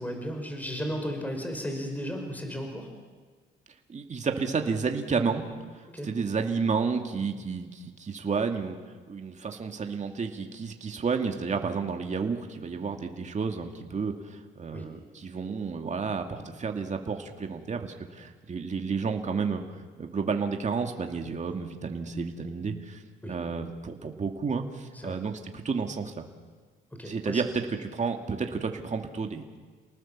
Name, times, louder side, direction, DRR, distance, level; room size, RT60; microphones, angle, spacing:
voice 1, 0.0-2.9 5.9-6.1 14.7-14.9 23.2-23.3 24.9-25.2 27.0-27.4, equal, 10° left, 4 dB, 5.3 m, -34 dB
voice 2, 3.9-8.8 9.1-26.3 27.0-29.6, right 5 dB, 35° right, 4 dB, 2.4 m, -31 dB
29.5 x 19.0 x 7.4 m, 1.5 s
cardioid pair, 90°, 20 cm